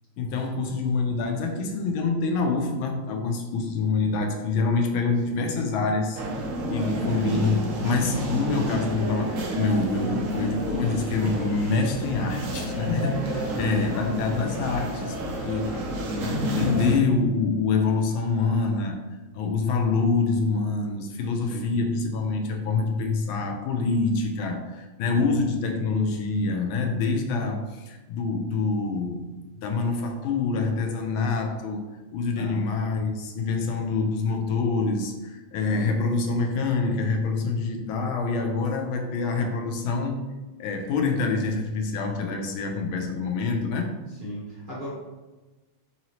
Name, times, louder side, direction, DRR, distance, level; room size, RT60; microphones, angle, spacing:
voice 1, 0.2-6.2 6.7-15.8 16.2-19.0 19.3-29.3 29.6-40.2 40.6-44.0, left 4 dB, 90° left, 3 dB, 1.5 m, -26 dB
voice 2, 4.7-5.4 6.7-8.0 9.9-10.2 13.4-14.8 15.6-15.9 21.3-21.7 25.0-25.3 32.3-32.6 35.6-35.9 44.2-44.9, equal, 35° right, -9 dB, 0.8 m, -37 dB
sound 1, 6.1-17.0, equal, 85° right, 0.7 m, -29 dB
4.8 x 2.8 x 2.9 m, 1.1 s
omnidirectional pair, 2.2 m